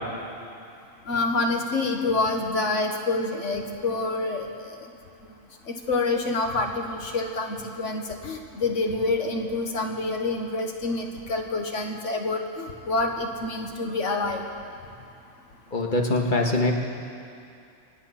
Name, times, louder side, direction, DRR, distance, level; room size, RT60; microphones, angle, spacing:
voice 1, 1.1-4.5 5.9-14.4, left 3 dB, 65° left, 3 dB, 1.7 m, -27 dB
voice 2, 15.7-16.7, left 2 dB, 40° left, 1 dB, 1.6 m, -23 dB
26.0 x 9.0 x 5.7 m, 2.5 s
omnidirectional pair, 1.3 m